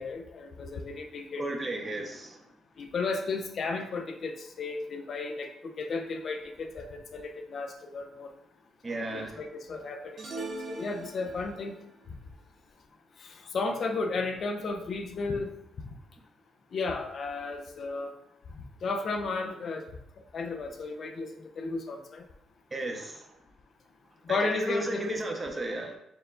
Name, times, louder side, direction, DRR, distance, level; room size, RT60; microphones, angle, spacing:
voice 1, 0.0-1.4 2.8-8.3 9.1-11.8 13.2-15.5 16.7-18.1 18.5-19.9 20.3-22.3 24.2-25.2, left 3 dB, 50° left, 5 dB, 0.5 m, -34 dB
voice 2, 1.4-2.4 8.8-9.4 22.7-23.3 24.3-26.0, right 2 dB, 25° right, 3 dB, 0.7 m, -34 dB
sound 1, 10.2-11.7, right 3 dB, 55° right, 1.0 m, -40 dB
4.6 x 2.2 x 3.8 m, 0.82 s
cardioid pair, 90°, 0 cm